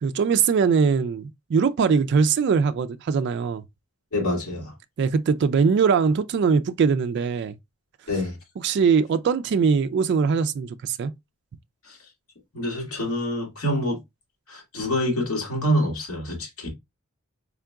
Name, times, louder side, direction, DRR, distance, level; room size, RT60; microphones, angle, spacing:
voice 1, 0.0-3.6 5.0-7.5 8.6-11.1, right 5 dB, 50° right, 0.3 m, -21 dB
voice 2, 4.1-4.7 8.1-8.4 11.8-12.0 12.5-14.0 14.5-16.7, equal, 75° left, 1.9 m, -26 dB
3.7 x 3.6 x 2.3 m
head